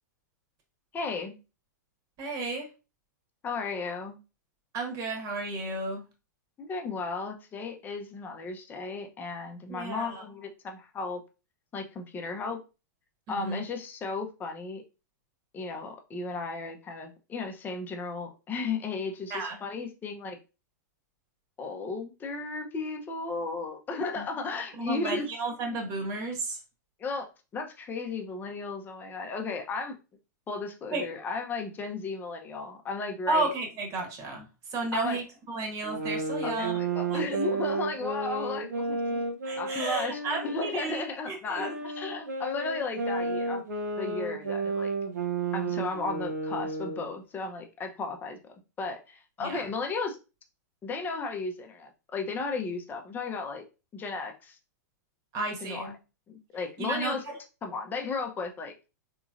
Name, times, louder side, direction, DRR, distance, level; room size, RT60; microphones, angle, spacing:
voice 1, 0.9-1.4 3.4-4.2 6.6-11.2 11.7-12.6 13.3-14.8 15.5-20.4 21.6-25.3 25.7-25.8 27.0-27.3 27.5-30.0 30.5-33.5 34.9-35.2 36.4-39.3 39.6-43.6 44.0-44.9 45.5-50.2 50.8-53.7 53.9-54.6 55.6-55.9 56.3-57.2 57.6-58.7, left 4 dB, 20° left, 4 dB, 0.7 m, -35 dB
voice 2, 2.2-2.7 4.7-6.0 9.7-10.2 13.3-13.6 19.3-19.6 24.2-24.3 24.8-26.6 30.9-31.1 33.3-36.8 37.1-37.2 39.4-41.7 49.4-49.6 55.3-55.9 56.8-57.4, right 2 dB, 35° right, 2 dB, 1.3 m, -33 dB
sound 1, 35.8-41.1 41.5-47.1, right 3 dB, 70° right, 0.9 m, -32 dB
3.7 x 3.0 x 2.5 m, 0.30 s
hypercardioid pair, 115°, 10 cm